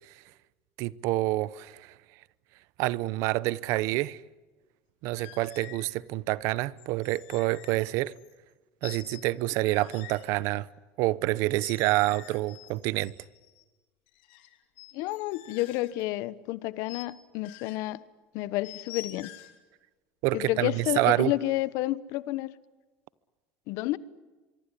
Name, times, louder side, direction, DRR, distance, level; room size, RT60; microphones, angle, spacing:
voice 1, 0.8-1.9 2.8-4.2 5.0-8.1 8.8-10.7 11.0-13.1 20.2-21.3, right 18 dB, 70° right, 0.8 m, -27 dB
sound 1, 5.2-5.9 6.8-8.5 8.8-10.2 11.5-13.6 14.1-16.0 16.8-17.1 17.4-17.8 18.6-19.6 20.3-20.6, left 14 dB, 85° left, 3.7 m, -47 dB
voice 2, 14.9-18.0 18.3-19.3 20.3-22.5 23.7-24.0, left 17 dB, 70° left, 1.2 m, -30 dB
24.0 x 24.0 x 10.0 m
supercardioid pair, 120°, 5 cm